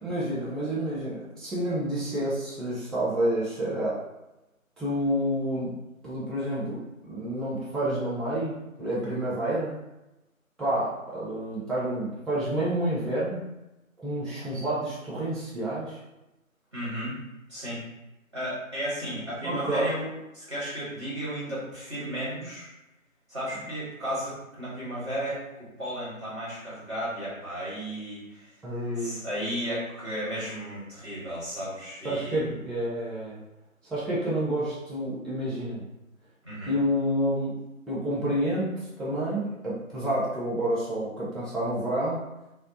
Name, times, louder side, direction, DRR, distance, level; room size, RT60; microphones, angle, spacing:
voice 1, 0.0-4.0 4.8-5.8 6.0-9.8 10.6-13.4 14.0-16.0 19.4-19.9 28.6-29.2 32.0-33.4 33.8-35.9 36.7-37.6 37.9-42.2, right 1 dB, ahead, -9 dB, 0.4 m, -29 dB
voice 2, 16.7-17.2 17.5-17.8 18.3-20.1 20.3-22.7 23.3-28.5 28.9-32.5 36.4-36.7, equal, 20° right, -9 dB, 1.0 m, -34 dB
2.6 x 2.0 x 2.7 m, 0.96 s
figure-of-eight pair, 160°, 42 cm